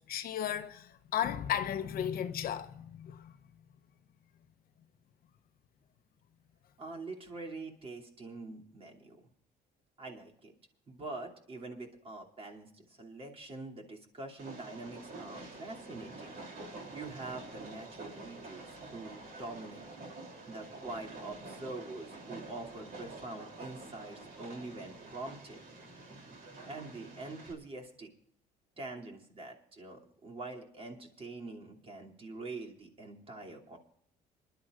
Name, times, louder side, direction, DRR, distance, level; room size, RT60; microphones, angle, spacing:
voice 1, 0.0-3.3, left 10 dB, 60° left, 0.8 m, -35 dB
voice 2, 6.8-9.3 10.0-10.5 10.9-16.4 16.9-19.8 20.5-25.6 26.7-28.1 28.8-33.8, right 2 dB, 35° right, 2.8 m, -44 dB
Train, 14.4-27.5, right 2 dB, 60° right, 3.2 m, -48 dB
26.5 x 11.5 x 2.5 m
cardioid pair, 110°, 17 cm